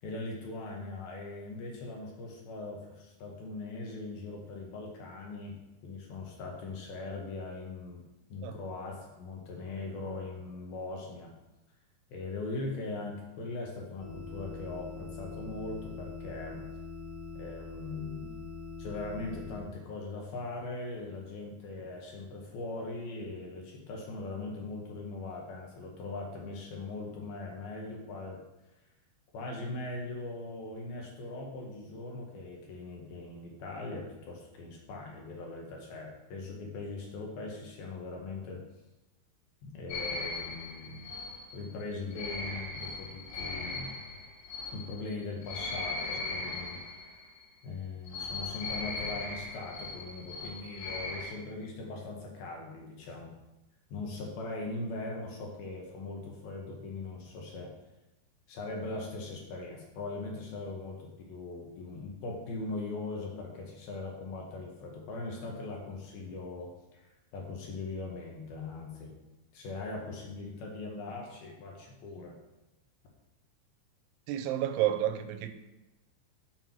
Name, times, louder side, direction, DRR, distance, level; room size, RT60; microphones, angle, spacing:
voice 1, 0.0-8.0 8.3-11.3 12.1-16.7 17.3-18.3 18.8-28.4 29.3-38.6 39.6-41.1 41.5-43.9 44.7-47.0 47.6-53.3 53.9-57.7 58.5-69.2 69.5-72.4, left 3 dB, 65° left, 2.6 m, -40 dB
sound 1, 14.0-19.6, left 4 dB, 10° right, 1.1 m, -43 dB
sound 2, 39.9-47.4 48.1-51.3, left 3 dB, 85° left, 4.4 m, -39 dB
voice 2, 74.3-75.5, right 12 dB, 85° right, 2.9 m, -30 dB
7.5 x 5.6 x 5.9 m
omnidirectional pair, 5.5 m